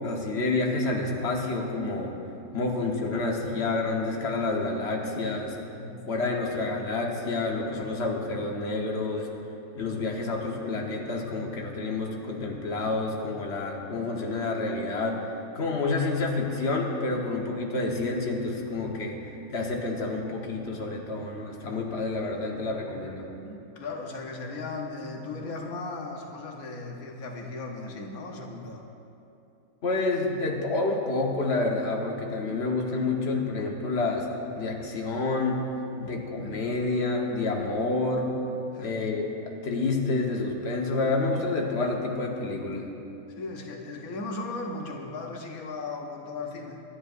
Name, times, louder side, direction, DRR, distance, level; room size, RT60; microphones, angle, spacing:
voice 1, 0.0-2.1 2.5-5.6 6.0-9.3 9.7-15.2 15.5-19.2 19.5-23.2 29.8-34.3 34.5-35.7 36.0-38.3 38.8-42.9, left 3 dB, 50° left, 0 dB, 1.6 m, -29 dB
voice 2, 5.8-6.1 17.2-17.5 23.4-28.8 35.9-36.1 38.7-38.9 43.4-46.8, left 3 dB, 85° left, 1 dB, 1.5 m, -37 dB
26.0 x 10.5 x 2.6 m, 2.8 s
omnidirectional pair, 1.5 m